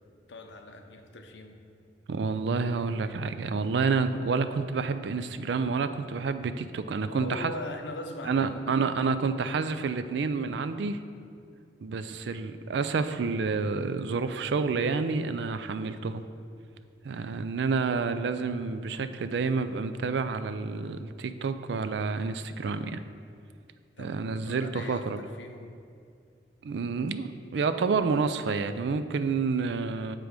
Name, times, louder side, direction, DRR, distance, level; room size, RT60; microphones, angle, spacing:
voice 1, 0.1-1.6 7.1-8.6 24.0-25.7, left 2 dB, 80° left, 5 dB, 0.7 m, -41 dB
voice 2, 2.1-7.5 8.3-11.0 11.8-16.2 17.0-23.0 24.0-25.2 26.6-30.2, right 4 dB, 75° right, 11 dB, 0.4 m, -29 dB
7.5 x 4.9 x 5.2 m, 2.4 s
head